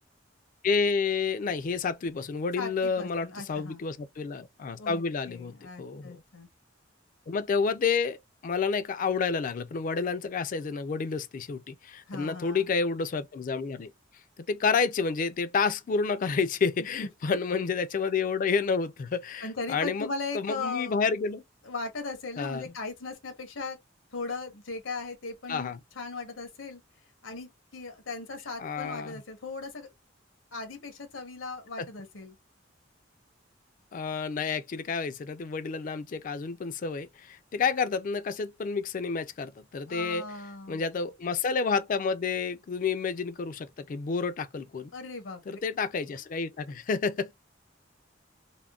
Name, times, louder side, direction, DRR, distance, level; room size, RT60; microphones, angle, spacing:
voice 1, 0.6-6.2 7.3-8.2 8.4-13.9 14.4-20.1 20.3-21.4 22.4-22.7 25.5-25.8 28.6-29.2 31.8-31.9 33.9-40.3 40.7-44.9 45.5-47.3, left 5 dB, 45° left, 0.3 m, -29 dB
voice 2, 2.6-3.8 4.8-5.0 5.3-6.5 12.1-12.7 19.4-21.0 21.6-23.8 24.1-26.8 27.2-29.9 30.5-32.3 39.9-40.8 44.9-45.6, left 3 dB, 85° left, 1.0 m, -38 dB
3.6 x 2.1 x 2.3 m
head